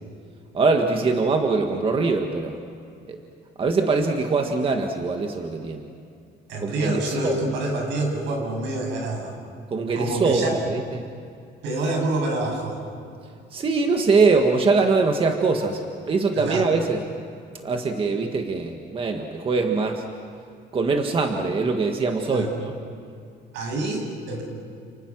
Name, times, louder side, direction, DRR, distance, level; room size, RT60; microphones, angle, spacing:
voice 1, 0.5-2.6 3.1-3.2 3.6-5.9 6.6-7.4 9.7-11.0 13.5-15.8 16.1-17.0 17.6-20.0 20.7-22.7, right 4 dB, 30° right, 4 dB, 1.7 m, -22 dB
voice 2, 6.5-9.4 9.9-10.5 11.6-12.8 16.4-16.7 22.3-22.5 23.5-24.4, right 2 dB, 80° right, 1 dB, 7.7 m, -27 dB
30.0 x 29.5 x 6.2 m, 2.4 s
cardioid pair, 155°, 19 cm